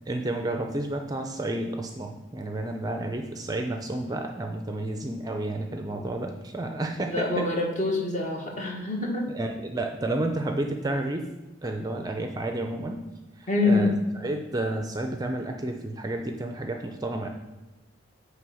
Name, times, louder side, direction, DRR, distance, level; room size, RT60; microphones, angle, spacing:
voice 1, 0.1-7.5 9.3-11.2 11.6-13.0 13.4-17.3, right 2 dB, 20° right, 4 dB, 0.5 m, -31 dB
voice 2, 7.0-9.3 13.5-13.9, left 2 dB, 35° left, 0 dB, 1.4 m, -26 dB
9.2 x 3.4 x 6.3 m, 1.1 s
head